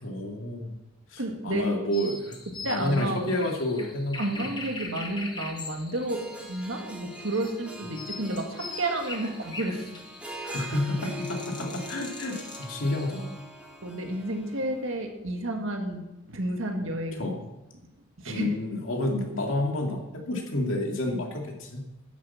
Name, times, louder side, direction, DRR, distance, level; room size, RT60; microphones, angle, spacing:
voice 1, 0.0-0.8 1.1-4.5 10.5-13.4 17.1-17.4 18.2-21.8, left 1 dB, 65° left, 2 dB, 2.3 m, -30 dB
voice 2, 1.2-1.8 2.6-3.2 4.2-9.8 10.4-10.6 13.8-17.3 18.2-18.6, right 1 dB, 65° right, 3 dB, 1.9 m, -31 dB
sound 1, 1.9-13.3, left 3 dB, 20° left, 1.3 m, -42 dB
Harp, 5.9-15.0, equal, 5° right, 2.1 m, -42 dB
10.5 x 7.8 x 7.2 m, 0.97 s
head